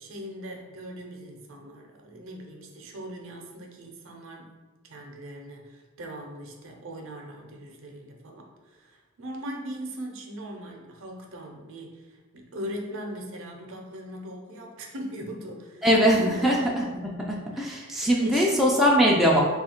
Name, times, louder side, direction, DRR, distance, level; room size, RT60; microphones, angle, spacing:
voice 1, 0.0-4.5 4.8-15.9 16.1-16.6 17.5-18.9, right 1 dB, 60° right, 1 dB, 0.6 m, -40 dB
voice 2, 15.8-19.4, equal, ahead, -3 dB, 0.3 m, -22 dB
3.2 x 2.4 x 4.3 m, 1.3 s
head